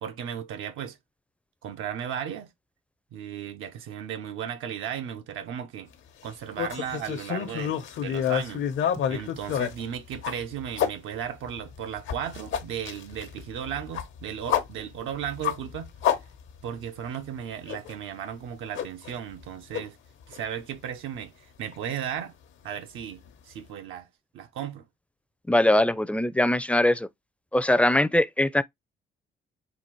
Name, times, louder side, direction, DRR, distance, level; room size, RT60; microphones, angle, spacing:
voice 1, 0.0-1.0 1.6-2.5 3.1-5.9 6.2-8.6 9.1-15.9 16.6-20.0 20.3-22.3 22.6-24.1 24.3-24.8, right 9 dB, 85° right, 0.7 m, -35 dB
sound 1, 6.6-10.9 11.4-16.8 17.1-17.2 17.7-17.9 18.7-19.5 19.7-19.8 20.3-20.4 21.7-21.8, left 9 dB, 75° left, 0.9 m, -29 dB
voice 2, 25.5-27.1 27.5-28.6, left 1 dB, 5° left, 0.4 m, -21 dB
4.1 x 2.5 x 4.4 m
cardioid pair, 90°, 20 cm